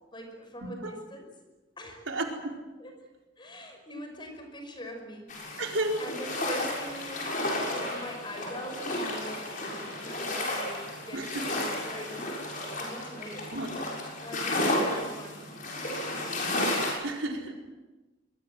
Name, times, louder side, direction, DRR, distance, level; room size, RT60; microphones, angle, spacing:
voice 1, 0.1-1.3 1.8-2.1 2.8-2.9 3.4-5.5 6.0-13.5 14.2-15.6 16.0-16.3, equal, 25° left, 4 dB, 5.5 m, -42 dB
voice 2, 2.1-2.5 5.6-6.0 11.1-11.5 13.5-13.7 17.0-17.5, right 1 dB, 85° right, 1 dB, 4.4 m, -32 dB
sound 1, 5.3-16.9, left 1 dB, 45° left, 6.7 m, -32 dB
24.0 x 22.5 x 7.9 m, 1.2 s
head